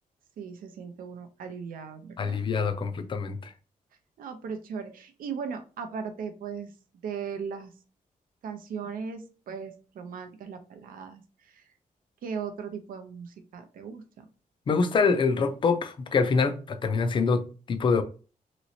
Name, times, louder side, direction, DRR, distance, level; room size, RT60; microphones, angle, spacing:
voice 1, 0.4-2.4 4.2-6.7 7.0-7.7 8.4-11.7 12.2-14.3, right 6 dB, 85° right, 0.6 m, -38 dB
voice 2, 2.2-3.5 14.7-18.0, left 4 dB, 35° left, 0.4 m, -25 dB
3.0 x 3.0 x 2.7 m
wide cardioid pair, 155°, 14 cm